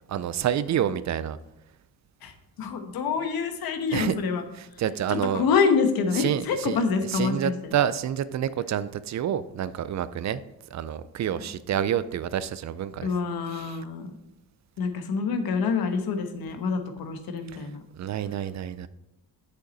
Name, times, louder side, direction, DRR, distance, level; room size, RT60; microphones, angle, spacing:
voice 1, 0.1-1.4 3.9-4.2 4.5-5.4 6.1-6.8 7.1-10.4 10.7-13.1 13.5-13.8 17.9-18.9, right 9 dB, 50° right, 15 dB, 0.5 m, -28 dB
voice 2, 2.2-4.4 5.1-7.7 11.4-11.5 13.0-14.1 14.8-17.8, left 5 dB, 80° left, 7 dB, 1.2 m, -26 dB
8.0 x 6.5 x 4.0 m, 0.88 s
cardioid pair, 125°, 36 cm